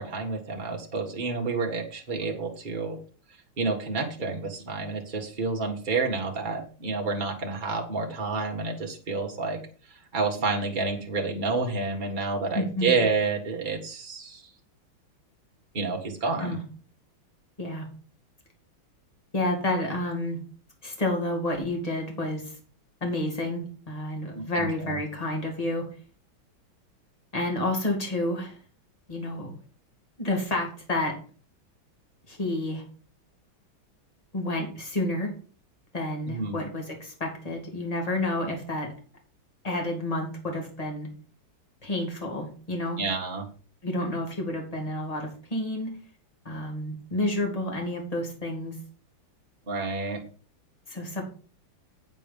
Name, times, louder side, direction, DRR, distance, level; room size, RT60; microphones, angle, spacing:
voice 1, 0.0-3.0 3.6-9.6 9.9-14.5 15.7-16.6 24.3-25.0 36.3-36.7 43.0-43.5 49.7-50.2, right 4 dB, 25° right, 1 dB, 1.7 m, -29 dB
voice 2, 12.5-13.0 16.4-16.6 17.6-17.9 19.3-20.4 20.8-22.5 23.0-25.9 27.3-28.6 29.1-29.5 30.2-31.2 32.3-32.8 34.3-35.3 35.9-38.9 39.6-41.1 41.8-43.0 43.8-46.0 46.4-48.8 50.9-51.2, left 1 dB, 20° left, 1 dB, 2.4 m, -30 dB
8.3 x 6.9 x 5.3 m, 0.41 s
omnidirectional pair, 2.2 m